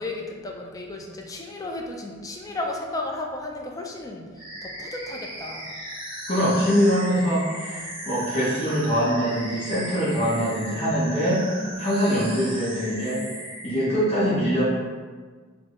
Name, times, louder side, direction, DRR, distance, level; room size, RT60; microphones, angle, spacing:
voice 1, 0.0-4.3 4.6-5.7 6.8-6.9 7.7-7.9 11.6-11.7, left 2 dB, 15° left, 0 dB, 0.3 m, -34 dB
sound 1, 4.4-14.0, right 1 dB, 25° right, 0.9 m, -37 dB
voice 2, 6.3-11.4 11.8-13.2 13.6-14.6, equal, 35° left, -9 dB, 0.7 m, -23 dB
3.9 x 2.0 x 2.9 m, 1.5 s
head